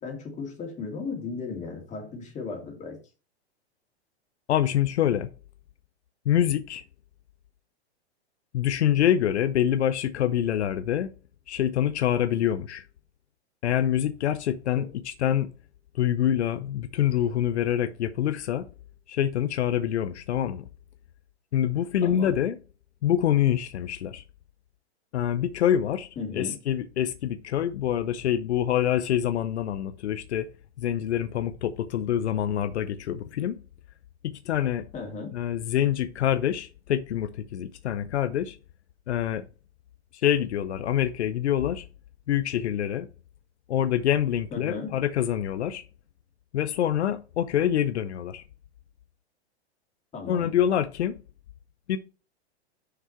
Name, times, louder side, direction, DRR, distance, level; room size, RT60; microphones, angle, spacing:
voice 1, 0.0-3.0 14.8-14.9 22.0-22.4 26.2-26.6 34.9-35.3 44.5-45.0 50.1-50.6, left 4 dB, 20° left, 2.5 m, -36 dB
voice 2, 4.5-5.3 6.3-6.8 8.5-11.1 11.5-12.8 13.6-15.5 15.9-18.7 19.1-20.7 21.5-22.6 23.0-24.2 25.1-26.1 26.3-30.5 30.8-33.6 34.2-34.9 35.3-38.6 39.1-39.4 40.2-41.8 42.3-43.1 43.7-45.8 46.5-48.4 50.3-51.2 51.9-52.0, left 10 dB, 80° left, 0.7 m, -26 dB
6.1 x 5.5 x 4.4 m
hypercardioid pair, 125°, 33 cm